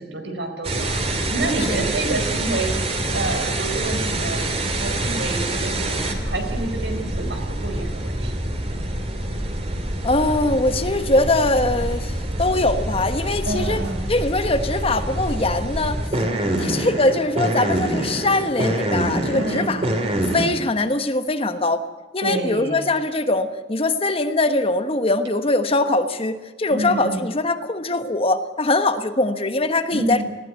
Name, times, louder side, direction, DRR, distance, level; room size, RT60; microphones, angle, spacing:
voice 1, 0.0-2.8 3.1-4.5 4.8-8.3 13.4-14.0 16.5-16.9 19.3-19.9 22.2-22.9 26.7-27.2 29.9-30.2, right 2 dB, 85° right, 4 dB, 4.5 m, -28 dB
sound 1, 0.6-20.5, right 1 dB, 35° right, 2.8 m, -26 dB
voice 2, 10.0-13.8 14.1-16.0 16.6-19.8 20.3-21.8 22.1-30.2, left 2 dB, 35° left, 9 dB, 1.2 m, -22 dB
19.5 x 16.0 x 9.3 m, 1.2 s
head